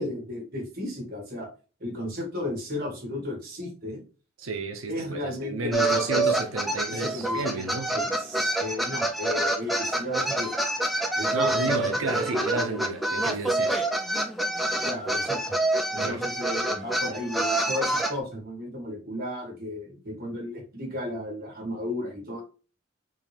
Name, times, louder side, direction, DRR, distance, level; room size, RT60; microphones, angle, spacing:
voice 1, 0.0-1.5 1.8-4.0 4.9-6.4 6.9-7.6 7.9-10.6 11.1-12.4 14.8-15.4 15.9-22.4, left 1 dB, 45° right, 1.7 m, -34 dB
voice 2, 4.4-8.0 11.3-13.8 16.0-16.2, right 2 dB, 80° right, 0.7 m, -31 dB
sound 1, 5.7-18.1, right 2 dB, ahead, 0.4 m, -27 dB
3.7 x 2.7 x 3.3 m
head